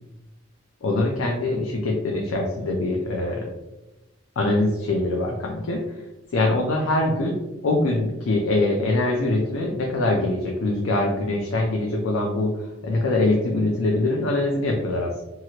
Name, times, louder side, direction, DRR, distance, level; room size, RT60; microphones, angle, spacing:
voice 1, 0.8-3.5 4.4-6.0 6.3-15.2, left 2 dB, 80° left, 0 dB, 0.5 m, -23 dB
2.9 x 2.4 x 2.8 m, 0.99 s
head